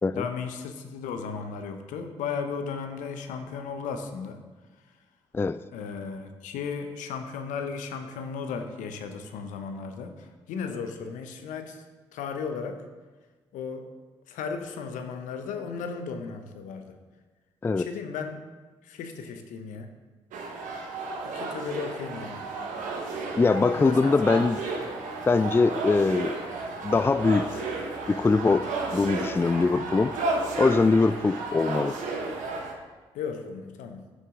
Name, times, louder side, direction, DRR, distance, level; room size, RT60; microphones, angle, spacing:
voice 1, 0.2-4.4 5.7-11.8 12.1-12.8 13.5-13.9 14.3-17.0 17.8-18.4 18.8-19.9 21.2-22.5 23.7-24.2 33.1-34.1, left 5 dB, 70° left, 7 dB, 0.9 m, -35 dB
sound 1, 20.3-32.7, right 3 dB, 70° right, 1.3 m, -33 dB
voice 2, 23.4-24.6 25.3-26.4 26.8-27.6 28.1-30.1 30.6-32.0, left 4 dB, 15° left, 14 dB, 0.3 m, -22 dB
10.5 x 6.7 x 3.7 m, 1.3 s
hypercardioid pair, 40°, 14 cm